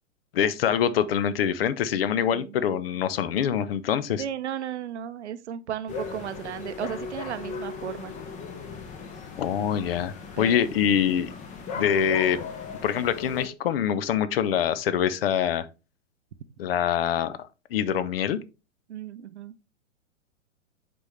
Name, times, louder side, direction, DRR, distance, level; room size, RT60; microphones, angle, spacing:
voice 1, 0.3-4.2 9.4-11.3 11.7-12.5 12.8-15.7 16.6-17.4 17.7-18.4, left 9 dB, 45° left, 0.7 m, -25 dB
voice 2, 2.1-2.6 4.2-8.1 10.4-10.7 18.9-19.5, right 10 dB, 55° right, 0.7 m, -35 dB
sound 1, 5.9-13.5, left 5 dB, 20° left, 0.8 m, -38 dB
7.7 x 4.4 x 3.2 m
figure-of-eight pair, 110°, 40 cm